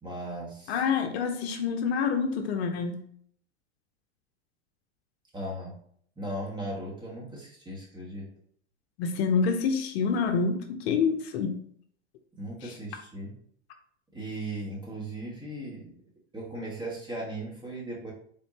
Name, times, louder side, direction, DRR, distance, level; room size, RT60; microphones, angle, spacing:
voice 1, 0.0-0.7 5.3-5.8 6.2-8.3 12.4-13.3 14.1-15.9 16.3-18.1, right 1 dB, 15° right, -4 dB, 1.6 m, -37 dB
voice 2, 0.7-3.0 9.0-11.6 12.6-12.7, left 5 dB, 60° left, 6 dB, 0.7 m, -27 dB
4.3 x 3.7 x 2.8 m, 0.62 s
hypercardioid pair, 115°, 35 cm